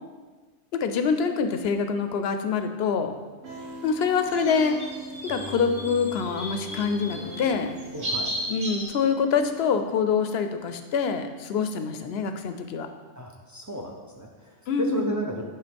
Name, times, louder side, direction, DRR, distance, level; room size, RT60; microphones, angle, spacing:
voice 1, 0.7-3.2 3.8-4.8 5.2-7.7 8.5-12.9 14.7-15.1, left 5 dB, 65° left, 8 dB, 0.8 m, -25 dB
sound 1, 3.4-9.6, right 1 dB, 85° right, 1.8 m, -41 dB
sound 2, 3.5-8.9, equal, 50° right, 1.9 m, -36 dB
voice 2, 7.9-8.3 13.2-15.4, right 1 dB, 20° right, 0 dB, 0.5 m, -34 dB
8.4 x 3.5 x 5.2 m, 1.4 s
omnidirectional pair, 1.3 m